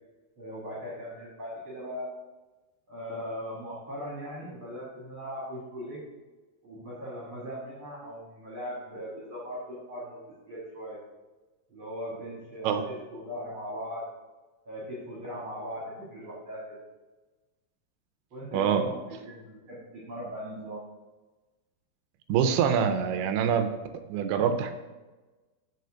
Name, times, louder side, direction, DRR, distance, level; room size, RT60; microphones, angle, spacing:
voice 1, 0.4-2.1 2.9-6.1 6.6-11.0 11.7-14.0 14.6-16.8 18.3-20.8, equal, 55° right, -5 dB, 1.5 m, -39 dB
voice 2, 18.5-18.8 22.3-23.7 24.1-24.7, right 7 dB, 85° right, 7 dB, 2.6 m, -25 dB
6.8 x 4.1 x 6.3 m, 1.2 s
omnidirectional pair, 4.5 m